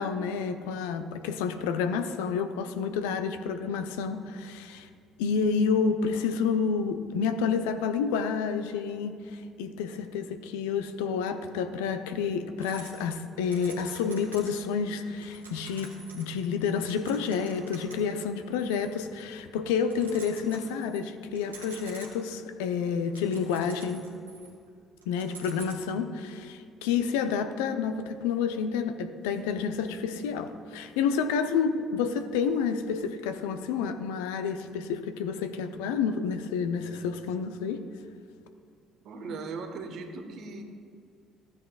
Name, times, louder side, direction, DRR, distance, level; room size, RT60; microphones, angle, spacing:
voice 1, 0.0-4.9 5.2-24.0 25.1-37.9, left 6 dB, 75° left, 8 dB, 0.6 m, -29 dB
sound 1, 12.6-14.7 15.0-19.4 19.8-21.0 21.4-22.4 22.8-24.7 25.0-25.7, right 3 dB, 90° right, 1.4 m, -48 dB
voice 2, 39.0-40.6, right 4 dB, 60° right, 5 dB, 1.2 m, -38 dB
15.0 x 9.5 x 2.4 m, 2.2 s
figure-of-eight pair, 50°, 0 cm